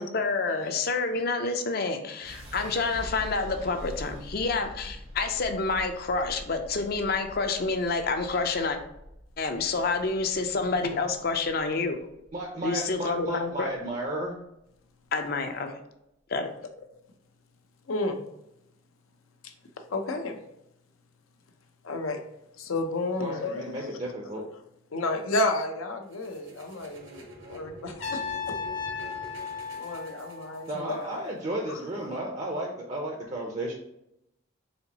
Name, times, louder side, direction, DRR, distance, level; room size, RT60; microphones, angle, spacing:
voice 1, 0.0-8.8 9.4-12.0 12.6-13.7 15.1-15.7 16.3-16.5, left 3 dB, 50° left, 6 dB, 0.5 m, -28 dB
sound 1, 2.2-14.3, equal, 90° right, 1.6 m, -45 dB
voice 2, 12.3-14.3 23.2-24.4 30.7-33.7, right 1 dB, 35° right, 0 dB, 0.5 m, -33 dB
voice 3, 17.9-18.2 19.4-19.5 19.9-20.4 21.8-22.2 22.6-23.9 24.9-28.6 29.7-31.2 31.7-31.8, left 2 dB, 85° left, 5 dB, 0.6 m, -31 dB
sound 2, 26.1-31.0, equal, 70° right, 1.0 m, -48 dB
Trumpet, 28.0-31.0, left 5 dB, 65° left, 1.1 m, -35 dB
4.3 x 3.8 x 2.8 m, 0.83 s
head